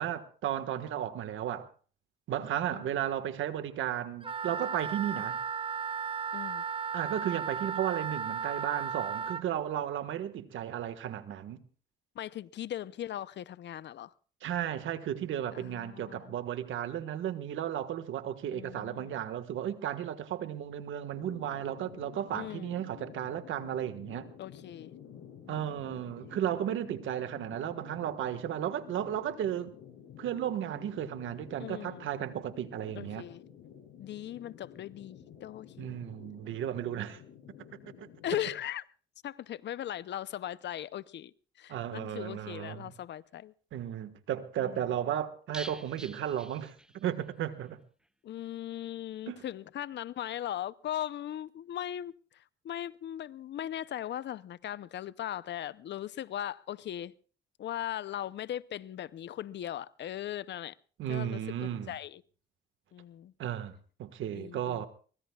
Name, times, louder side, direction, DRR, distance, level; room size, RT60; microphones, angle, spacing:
voice 1, 0.0-1.7 2.3-5.4 6.9-11.6 14.4-24.3 25.5-29.7 30.2-33.2 35.8-37.2 37.8-38.1 41.7-42.9 43.7-47.8 49.3-49.4 61.0-61.9 63.4-63.7 64.0-64.9, right 10 dB, 80° right, 1.6 m, -34 dB
Wind instrument woodwind instrument, 4.2-9.4, right 6 dB, 25° right, 0.7 m, -35 dB
voice 2, 6.3-6.6 12.2-14.1 15.5-16.3 18.5-19.2 22.3-22.8 24.4-24.9 25.4-26.4 31.6-32.1 33.0-33.4 34.0-36.0 38.2-38.8 39.2-43.5 44.6-44.8 48.2-57.1 57.6-60.8 61.1-62.2 62.9-63.3 64.3-64.9, left 11 dB, 65° left, 0.7 m, -39 dB
sound 1, 21.1-38.4, left 8 dB, 85° left, 6.3 m, -51 dB
sound 2, 45.5-47.3 47.6-47.7 48.0-48.1, equal, 5° right, 1.0 m, -47 dB
23.5 x 21.0 x 2.4 m
cardioid pair, 90°, 20 cm